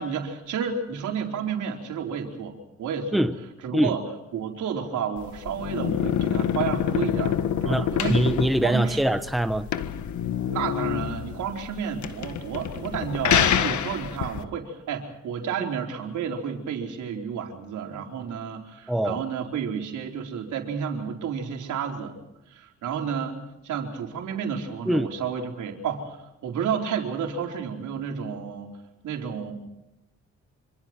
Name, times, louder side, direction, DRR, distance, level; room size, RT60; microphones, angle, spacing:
voice 1, 0.0-3.2 3.6-4.0 4.3-8.3 8.6-9.0 10.5-22.2 22.5-28.7 29.0-29.5, right 7 dB, 75° right, 4.4 m, -31 dB
sound 1, 5.2-14.4, left 9 dB, 70° left, 1.8 m, -26 dB
voice 2, 7.6-9.7 18.9-19.2 24.9-25.1, right 1 dB, ahead, 1.2 m, -23 dB
26.5 x 26.5 x 4.6 m
cardioid pair, 90°, 30 cm